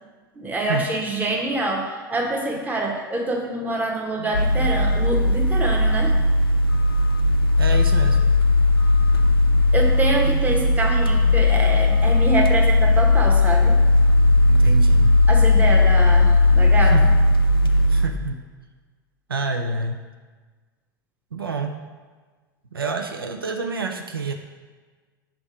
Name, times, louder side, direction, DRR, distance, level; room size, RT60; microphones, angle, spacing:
voice 1, 0.4-6.1 9.7-13.7 15.3-17.0, right 2 dB, 15° right, 0 dB, 1.1 m, -25 dB
sound 1, 4.3-18.1, left 2 dB, 85° left, 0.5 m, -17 dB
voice 2, 7.6-8.2 14.4-15.2 16.8-17.1 17.9-18.4 19.3-20.0 21.3-21.8 22.7-24.3, right 4 dB, 85° right, 5 dB, 0.4 m, -28 dB
5.9 x 3.4 x 4.7 m, 1.4 s
figure-of-eight pair, 80°, 12 cm